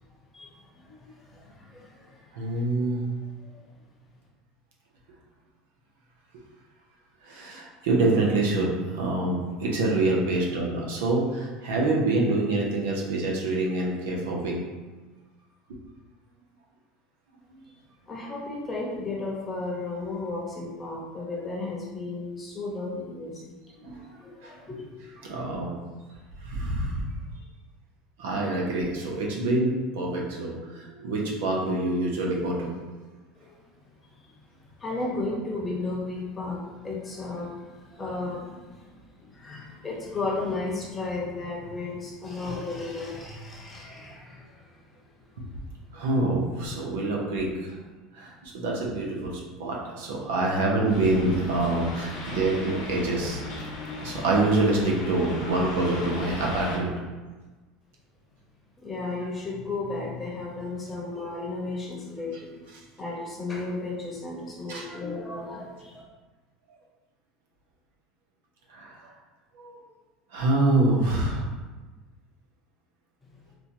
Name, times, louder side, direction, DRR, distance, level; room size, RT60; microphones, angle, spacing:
voice 1, 0.3-2.6 3.4-3.5 18.1-23.5 23.8-24.9 33.4-33.5 34.8-44.7 58.8-62.5 63.0-66.0, left 3 dB, 20° left, -3 dB, 0.9 m, -34 dB
voice 2, 2.3-3.0 7.2-14.6 23.8-24.0 24.4-24.5 25.2-25.8 26.4-27.1 28.2-32.7 43.9-44.1 45.9-47.8 48.1-53.4 54.0-56.9 64.7-64.9 68.7-69.1 69.5-69.7 70.3-71.4, right 2 dB, 85° right, -2 dB, 0.8 m, -26 dB
sound 1, 50.9-56.8, left 2 dB, 70° left, 1.1 m, -37 dB
4.3 x 2.2 x 2.8 m, 1.2 s
supercardioid pair, 120°, 0 cm